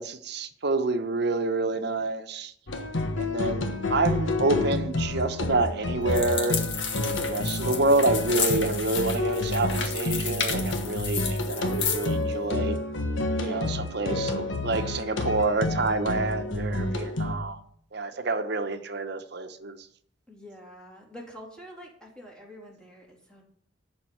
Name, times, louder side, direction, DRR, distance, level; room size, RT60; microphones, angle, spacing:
voice 1, 0.0-2.5 3.2-6.6 7.0-12.8 13.5-13.7 13.9-17.6 17.9-19.8, right 3 dB, 60° right, 1.0 m, -28 dB
sound 1, 2.7-17.4, left 2 dB, 90° left, 1.3 m, -29 dB
sound 2, 6.1-12.1, left 7 dB, 75° left, 1.8 m, -32 dB
voice 2, 13.3-14.1 20.3-23.4, equal, 5° left, 3.1 m, -45 dB
11.5 x 5.3 x 7.7 m
head